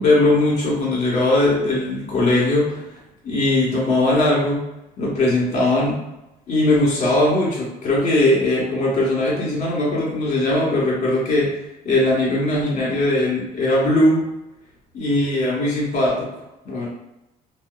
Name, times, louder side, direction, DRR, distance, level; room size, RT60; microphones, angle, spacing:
voice 1, 0.0-2.8 3.2-4.7 5.0-6.0 6.5-11.5 11.8-14.3 14.9-16.3 16.6-16.9, left 1 dB, 45° left, -5 dB, 1.5 m, -19 dB
2.7 x 2.2 x 2.4 m, 0.93 s
cardioid pair, 110°, 17 cm